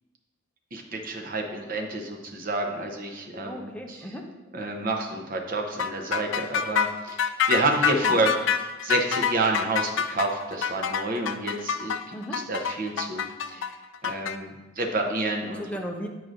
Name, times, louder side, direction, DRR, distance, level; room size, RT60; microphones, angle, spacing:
voice 1, 0.7-4.0 4.5-8.3 8.8-13.7 14.0-15.6, right 2 dB, 45° right, 2 dB, 0.8 m, -29 dB
voice 2, 3.4-4.3 8.0-8.3 12.1-12.5 15.5-16.1, equal, 5° left, 1 dB, 0.6 m, -36 dB
sound 1, 5.8-14.4, left 7 dB, 75° left, 0.4 m, -26 dB
9.0 x 4.7 x 2.6 m, 1.1 s
head